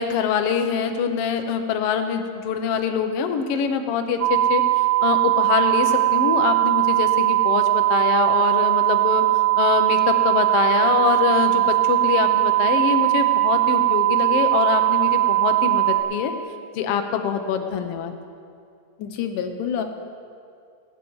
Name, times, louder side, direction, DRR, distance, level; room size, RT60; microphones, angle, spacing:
voice 1, 0.0-4.6 5.0-9.2 9.6-16.3 16.7-18.1, left 7 dB, 70° left, 6 dB, 1.5 m, -24 dB
sound 1, 4.2-16.0, right 17 dB, 70° right, 1.8 m, -19 dB
voice 2, 19.0-19.8, left 8 dB, 90° left, 6 dB, 2.5 m, -27 dB
20.0 x 9.2 x 4.7 m, 2.3 s
omnidirectional pair, 3.6 m